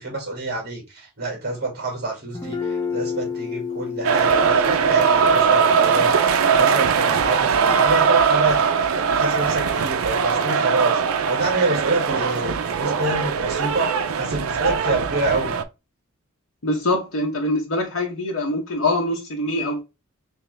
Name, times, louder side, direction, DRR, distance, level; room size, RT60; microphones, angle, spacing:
voice 1, 0.0-8.8 9.1-15.6, right 2 dB, 45° right, 2.0 m, -27 dB
Guitar, 2.3-10.0, left 5 dB, 15° left, 0.7 m, -33 dB
sound 1, 4.0-15.6, right 6 dB, 80° right, 0.4 m, -20 dB
voice 2, 16.6-19.8, left 1 dB, 75° left, 0.8 m, -24 dB
3.5 x 2.9 x 3.2 m
head